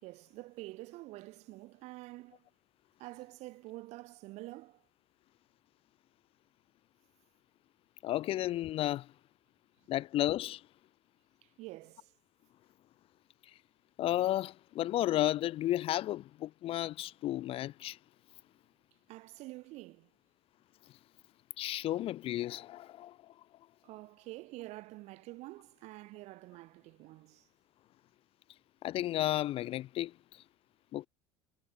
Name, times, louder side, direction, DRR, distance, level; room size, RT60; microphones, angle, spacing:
voice 1, 0.0-2.5 3.0-4.8 11.4-12.1 19.1-20.1 23.8-27.5, right 20 dB, 65° right, 5.0 m, -48 dB
voice 2, 8.0-9.1 9.9-10.6 14.0-18.0 21.6-23.2 28.8-30.1 30.9-31.1, left 14 dB, 50° left, 0.7 m, -33 dB
supercardioid pair, 105°, 12 cm